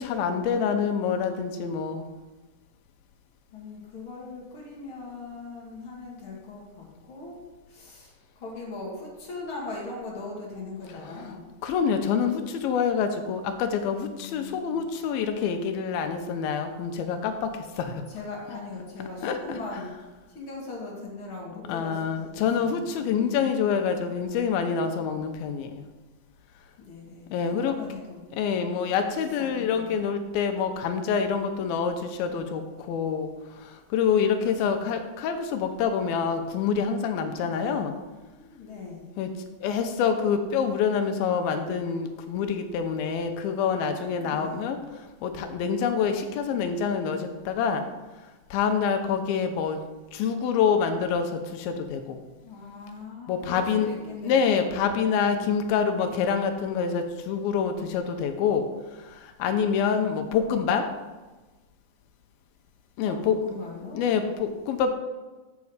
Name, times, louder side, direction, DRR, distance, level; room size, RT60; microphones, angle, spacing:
voice 1, 0.0-2.1 11.6-17.5 17.8-17.9 19.2-19.4 21.7-25.8 27.3-27.7 28.4-32.6 32.9-33.3 33.9-37.9 39.2-39.3 39.6-44.8 45.2-47.8 48.5-49.8 50.1-52.2 53.3-58.6 59.4-60.9 63.0-63.4 63.9-64.9, left 6 dB, 85° left, 6 dB, 2.6 m, -26 dB
voice 2, 3.5-11.4 13.9-14.8 18.1-19.9 20.3-23.7 26.8-28.3 29.1-29.9 34.6-34.9 37.4-37.8 38.3-39.1 44.2-44.6 52.4-54.7 55.1-56.0 59.7-60.7 63.0-64.0, left 3 dB, 45° left, -3 dB, 2.0 m, -40 dB
7.5 x 7.1 x 4.8 m, 1.2 s
omnidirectional pair, 4.3 m